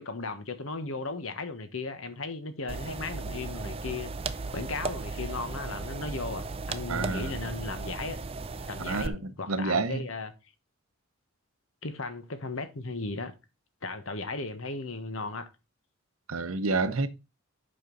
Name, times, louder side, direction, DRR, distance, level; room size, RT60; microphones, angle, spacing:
voice 1, 0.0-8.2 8.7-10.3 11.8-13.3 13.8-15.5, left 3 dB, 70° left, 1.3 m, -36 dB
sound 1, 2.7-9.1, right 3 dB, 25° right, 0.4 m, -36 dB
voice 2, 6.9-7.4 8.8-10.0 16.3-17.1, right 3 dB, 80° right, 0.8 m, -29 dB
7.8 x 5.3 x 3.9 m
head